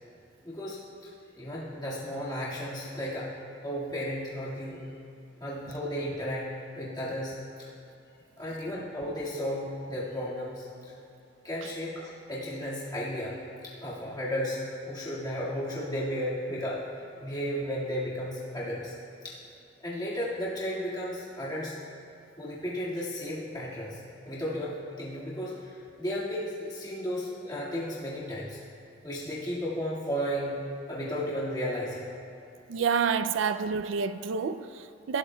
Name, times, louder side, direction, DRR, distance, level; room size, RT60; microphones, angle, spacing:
voice 1, 0.4-3.3 3.6-4.9 5.4-7.7 8.4-10.9 11.4-13.4 13.6-18.9 19.2-19.4 19.8-21.8 22.4-28.6 29.0-30.6 30.9-32.0, equal, 20° left, -8 dB, 1.9 m, -34 dB
voice 2, 32.7-35.2, right 6 dB, 85° right, 11 dB, 0.4 m, -28 dB
19.5 x 11.5 x 2.3 m, 2.7 s
head